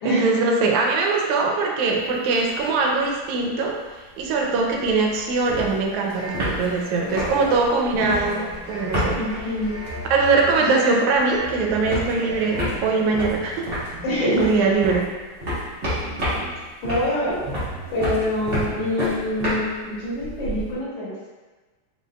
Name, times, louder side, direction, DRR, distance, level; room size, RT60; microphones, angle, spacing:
voice 1, 0.1-3.8 4.2-9.2 10.0-13.7 14.2-15.1 15.6-15.7, right 4 dB, 80° right, 0 dB, 1.9 m, -22 dB
sound 1, 2.0-2.7 3.0-3.1 3.3-10.7 11.0-20.7, equal, 40° right, 1.0 m, -30 dB
sound 2, 6.1-12.6, equal, 30° left, 1.0 m, -39 dB
sound 3, 7.2-9.4 9.9-10.7 11.4-15.5 15.9-16.7 17.4-19.2, right 2 dB, 65° right, 1.6 m, -41 dB
voice 2, 7.9-8.4 9.2-9.7 10.7-10.8 14.0-14.7 16.3-16.4 16.8-17.4 17.9-21.3, left 1 dB, 75° left, -8 dB, 2.5 m, -26 dB
4.9 x 4.1 x 2.2 m, 1.3 s
omnidirectional pair, 3.5 m